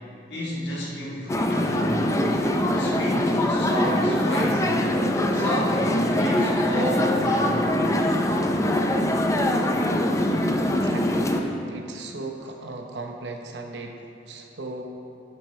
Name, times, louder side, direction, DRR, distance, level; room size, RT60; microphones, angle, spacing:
voice 1, 0.3-2.0 2.8-4.9 5.3-7.6, equal, 75° left, -4 dB, 1.5 m, -31 dB
sound 1, 1.3-11.4, left 1 dB, 15° left, 0.5 m, -23 dB
voice 2, 10.6-14.8, right 2 dB, 80° right, 3 dB, 0.9 m, -37 dB
9.9 x 8.1 x 3.2 m, 2.6 s
head